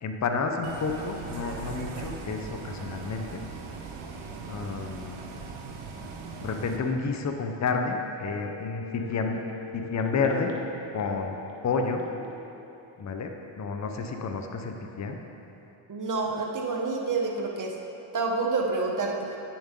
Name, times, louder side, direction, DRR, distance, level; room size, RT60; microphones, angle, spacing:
voice 1, 0.0-3.4 4.5-5.2 6.4-9.4 9.7-10.5 10.9-11.4 11.6-12.0 13.0-15.2, left 4 dB, 35° left, 4 dB, 0.8 m, -30 dB
Bus, 0.6-6.8, right 4 dB, 75° right, 1.0 m, -39 dB
sound 1, 7.9-13.6 14.0-14.1, left 5 dB, 80° left, 1.2 m, -43 dB
voice 2, 15.9-17.8 18.1-19.4, right 3 dB, 40° right, 0 dB, 1.3 m, -28 dB
9.5 x 7.2 x 3.7 m, 3.0 s
cardioid pair, 80°, 49 cm